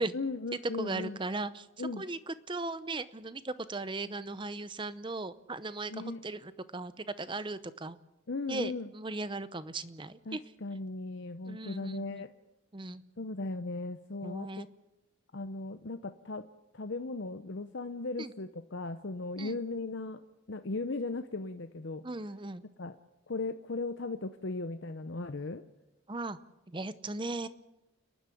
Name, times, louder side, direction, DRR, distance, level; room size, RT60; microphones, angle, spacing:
voice 1, 0.0-1.2 1.8-2.0 5.9-6.3 8.3-8.9 10.3-12.3 13.2-14.7 15.3-16.5 16.7-20.2 20.5-22.0 22.8-23.0 23.3-25.6, left 3 dB, 55° left, 8 dB, 0.7 m, -37 dB
voice 2, 0.8-8.0 8.5-10.4 11.5-12.2 12.7-13.0 14.2-14.7 18.2-18.3 19.4-19.6 22.0-22.6 26.1-26.4 26.7-27.5, right 2 dB, 20° right, 14 dB, 0.7 m, -37 dB
30.0 x 11.5 x 8.4 m, 0.98 s
head